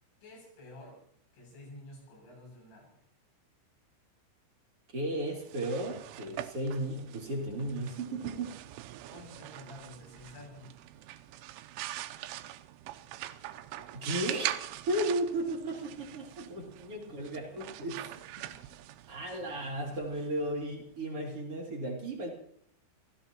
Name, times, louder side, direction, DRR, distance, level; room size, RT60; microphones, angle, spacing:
voice 1, 0.2-1.0 1.3-3.0 9.1-10.8 17.1-17.2 17.5-17.6 18.5-18.6, left 1 dB, 80° left, -1 dB, 10.0 m, -50 dB
voice 2, 4.9-8.6 13.9-14.6 14.9-18.0 18.4-18.5 19.1-22.3, right 1 dB, 35° right, -2 dB, 3.0 m, -35 dB
sound 1, 5.3-21.0, right 14 dB, 85° right, 3.2 m, -43 dB
28.5 x 16.5 x 3.0 m, 0.66 s
omnidirectional pair, 5.5 m